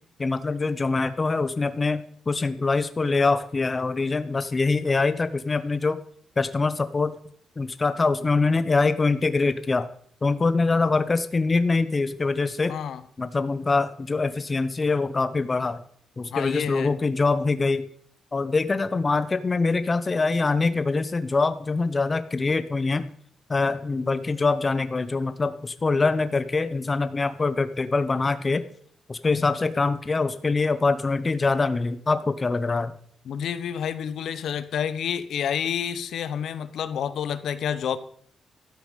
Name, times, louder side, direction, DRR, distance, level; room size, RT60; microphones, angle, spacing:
voice 1, 0.2-6.0 6.4-7.1 7.6-9.9 10.2-12.8 13.2-15.8 16.2-17.9 18.3-23.1 23.5-28.6 29.1-32.9, left 3 dB, 25° left, 12 dB, 0.5 m, -24 dB
voice 2, 12.7-13.0 16.3-16.9 33.3-38.0, left 8 dB, 70° left, 14 dB, 0.8 m, -29 dB
12.5 x 8.4 x 5.1 m, 0.62 s
wide cardioid pair, 155°, 0 cm